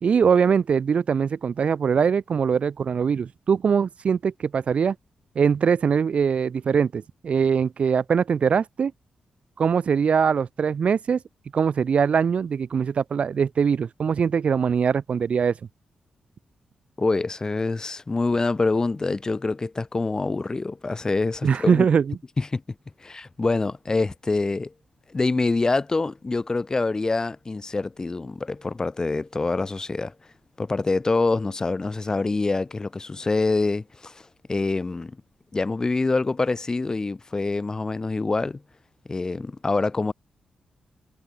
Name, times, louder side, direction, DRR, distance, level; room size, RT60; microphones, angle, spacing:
voice 1, 0.0-5.0 5.4-8.9 9.6-11.2 11.5-15.6 21.4-22.2, right 6 dB, 55° right, 0.4 m, -22 dB
voice 2, 17.0-21.9 22.4-22.6 23.0-24.7 25.1-30.1 30.6-34.2 34.5-35.2 35.5-38.6 39.1-40.1, left 3 dB, 25° left, 0.9 m, -25 dB
cardioid pair, 95°, 3 cm